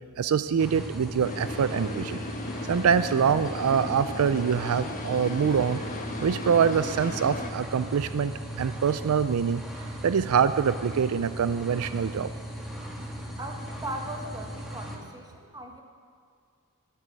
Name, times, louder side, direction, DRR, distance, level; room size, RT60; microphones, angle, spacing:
voice 1, 0.2-2.2 2.7-5.8 6.2-9.6 10.0-12.3, right 7 dB, 75° right, 13 dB, 0.4 m, -25 dB
sound 1, 0.6-15.0, right 1 dB, ahead, 1.7 m, -38 dB
sound 2, 1.2-7.5, left 2 dB, 35° left, 1.3 m, -37 dB
voice 2, 13.4-15.8, right 1 dB, 20° right, 2 dB, 1.4 m, -38 dB
11.0 x 10.5 x 8.3 m, 2.2 s
head